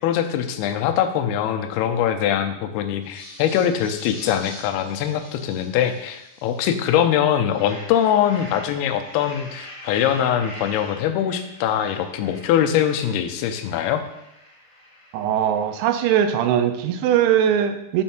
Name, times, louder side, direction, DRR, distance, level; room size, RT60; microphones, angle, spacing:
voice 1, 0.0-14.0, left 9 dB, 85° left, 6 dB, 2.3 m, -22 dB
sound 1, 3.0-6.9 7.3-16.0, left 1 dB, 45° left, 1.9 m, -43 dB
voice 2, 15.1-18.0, right 9 dB, 90° right, 8 dB, 3.1 m, -20 dB
6.1 x 5.4 x 5.8 m, 0.85 s
omnidirectional pair, 5.2 m